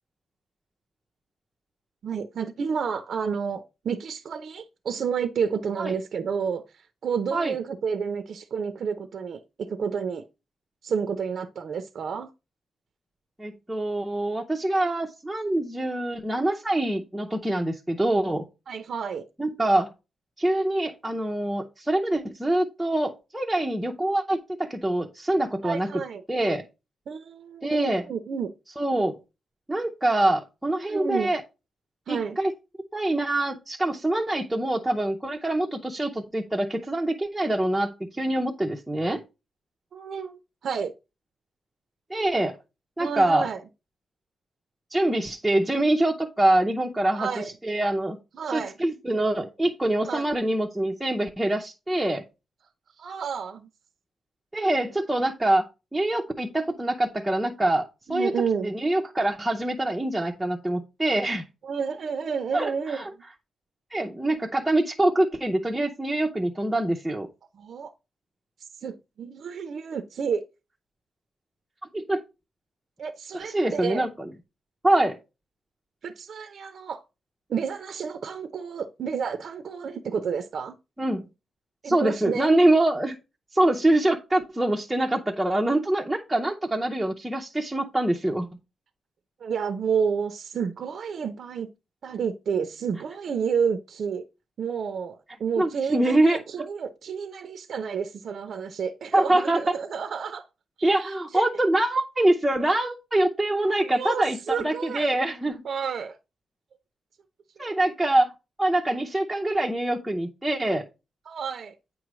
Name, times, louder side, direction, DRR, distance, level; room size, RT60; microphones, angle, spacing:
voice 1, 2.0-6.6 7.0-9.4 9.7-10.2 10.8-12.3 18.7-19.2 25.6-26.2 27.1-28.5 30.9-31.3 32.1-32.4 39.9-40.9 43.0-43.6 47.1-47.4 48.3-48.7 50.0-50.2 53.0-53.7 58.1-58.7 61.6-63.0 67.5-67.9 68.8-70.4 73.0-74.0 76.0-77.0 77.5-80.8 81.8-82.5 89.4-91.7 92.0-94.2 94.6-100.4 100.8-101.5 103.8-105.2 105.6-106.2 107.6-107.7 111.3-111.7, right 6 dB, 50° right, 0.6 m, -30 dB
voice 2, 13.4-18.4 19.4-19.9 20.4-26.0 26.3-26.7 27.6-28.0 28.8-29.2 29.7-31.4 32.1-32.5 32.9-39.2 42.1-42.6 43.0-43.5 44.9-47.3 47.6-48.2 48.5-52.3 54.5-55.7 55.9-58.3 58.6-61.5 62.5-63.1 63.9-67.3 71.9-72.2 73.5-74.3 74.8-75.2 81.0-81.2 81.8-83.2 83.5-88.5 95.6-96.4 99.1-99.6 100.8-105.6 107.6-108.3 108.6-110.8, right 1 dB, 5° right, 0.6 m, -24 dB
8.8 x 3.1 x 6.0 m
wide cardioid pair, 175°, 0 cm